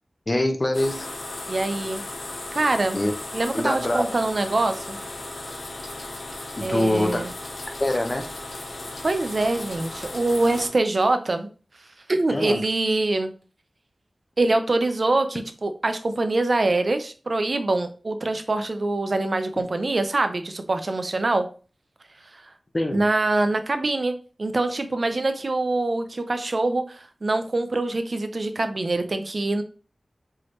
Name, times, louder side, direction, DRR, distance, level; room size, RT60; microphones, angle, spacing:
voice 1, 0.3-1.1 2.9-3.1 3.5-4.0 6.6-7.2 7.8-8.3 12.3-12.6 22.7-23.0, left 1 dB, 40° left, 5 dB, 0.9 m, -24 dB
sound 1, 0.7-10.7, left 2 dB, 85° left, 0.9 m, -36 dB
voice 2, 1.5-2.0 2.5-3.0 3.3-5.0 6.6-7.3 9.0-11.5 12.1-13.3 14.4-21.5 22.3-22.4 22.9-24.1 24.4-29.6, right 2 dB, 60° right, 8 dB, 0.6 m, -24 dB
4.7 x 3.1 x 3.1 m, 0.36 s
cardioid pair, 45°, 0 cm